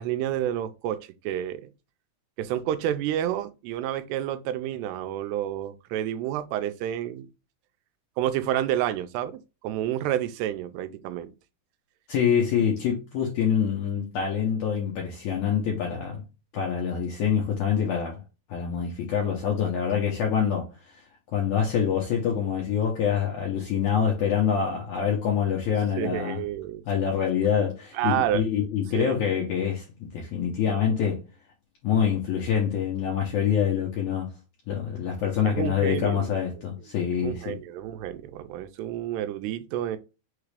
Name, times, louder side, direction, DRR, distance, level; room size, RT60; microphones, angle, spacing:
voice 1, 0.0-1.7 2.4-7.3 8.2-11.3 26.0-26.8 27.9-28.4 28.9-29.2 35.5-36.3 37.2-40.0, right 11 dB, 90° right, 2.6 m, -29 dB
voice 2, 12.1-16.2 16.5-18.2 18.5-20.7 21.3-26.4 26.9-31.2 31.8-34.4 34.7-37.6, left 8 dB, 75° left, 1.7 m, -25 dB
6.1 x 2.4 x 3.2 m
omnidirectional pair, 4.6 m